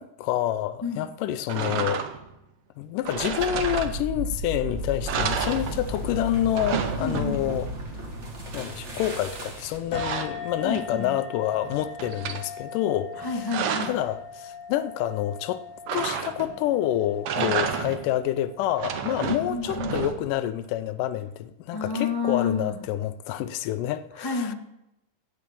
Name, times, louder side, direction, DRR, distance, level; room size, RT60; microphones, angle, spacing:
voice 1, 0.0-2.1 2.8-7.7 8.5-13.5 13.8-15.6 15.9-24.5, left 12 dB, 80° left, 2.0 m, -28 dB
sound 1, 1.5-2.4 3.0-4.3 4.7-4.8 5.1-6.1 6.4-7.6 9.3-11.1 11.5-12.4 13.1-14.1 15.9-16.7 17.1-18.2 18.6-20.4, right 7 dB, 80° right, 1.3 m, -31 dB
sound 2, 3.1-9.9, left 1 dB, 35° right, 1.1 m, -34 dB
voice 2, 7.0-7.4 10.6-11.1 13.2-13.9 17.4-17.6 19.2-20.0 21.7-22.8 24.2-24.5, left 4 dB, 10° left, 1.6 m, -30 dB
sound 3, 9.9-19.0, left 5 dB, 60° left, 1.8 m, -40 dB
16.5 x 6.2 x 6.9 m
omnidirectional pair, 4.0 m